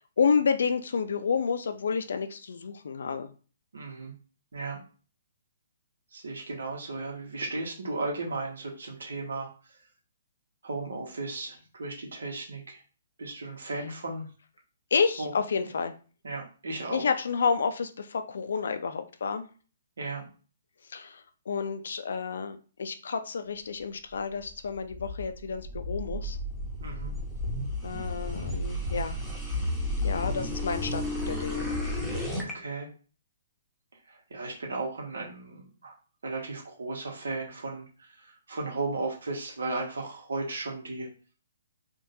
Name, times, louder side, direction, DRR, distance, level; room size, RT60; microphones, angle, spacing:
voice 1, 0.2-3.3 14.9-15.9 16.9-19.5 20.9-26.4 27.8-29.2 30.0-31.7, left 5 dB, 70° left, 9 dB, 0.5 m, -30 dB
voice 2, 3.7-4.1 4.5-4.8 6.1-9.5 10.6-12.8 13.2-14.3 15.2-15.3 16.2-17.0 20.0-20.3 26.8-27.1 30.1-30.4 32.3-32.9 34.1-35.9 36.2-41.1, right 3 dB, 85° right, 0 dB, 1.2 m, -35 dB
sound 1, 24.5-32.5, left 1 dB, ahead, 0.8 m, -32 dB
3.7 x 2.5 x 2.7 m, 0.38 s
hypercardioid pair, 155°, 0 cm